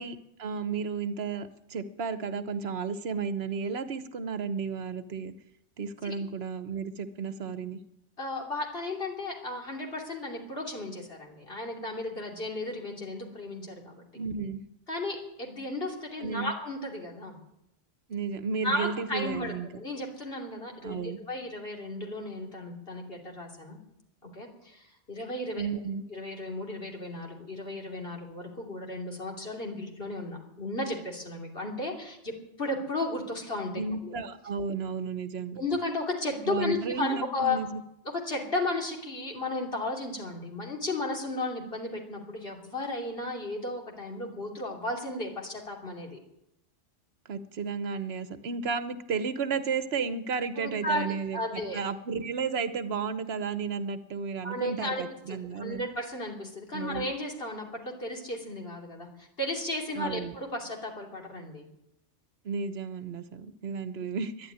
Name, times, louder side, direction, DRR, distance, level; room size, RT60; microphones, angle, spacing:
voice 1, 0.0-5.3 5.8-7.8 14.1-14.6 16.2-16.5 18.1-19.7 20.8-21.2 25.6-26.0 33.7-35.6 36.4-37.8 47.3-55.8 56.7-57.1 59.9-60.4 62.4-64.5, right 5 dB, 60° right, 12 dB, 1.1 m, -33 dB
voice 2, 8.2-14.0 14.9-17.4 18.6-23.8 24.2-25.7 26.1-32.3 32.6-33.7 34.0-34.1 35.5-37.6 38.2-46.2 50.6-51.0 51.3-51.8 54.4-55.0 55.3-61.7, left 2 dB, 55° left, 0 dB, 3.3 m, -34 dB
12.5 x 11.0 x 9.8 m, 0.83 s
omnidirectional pair, 1.2 m